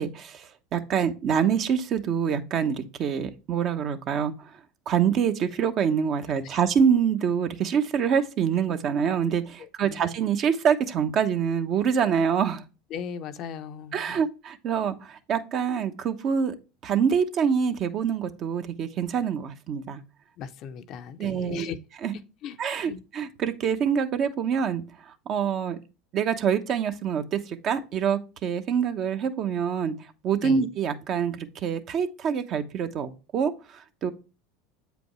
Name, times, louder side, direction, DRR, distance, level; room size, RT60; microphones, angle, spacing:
voice 1, 0.0-4.5 4.9-12.6 13.9-16.5 16.8-20.0 21.2-21.7 22.0-22.1 22.6-25.8 26.1-30.0 30.2-34.1, right 7 dB, 45° right, 1.0 m, -26 dB
voice 2, 9.6-10.1 12.9-14.2 20.4-21.8 22.1-22.6 22.8-23.0 30.4-30.6, left 7 dB, 50° left, 0.6 m, -38 dB
8.0 x 5.1 x 3.1 m
hypercardioid pair, 95°, 0 cm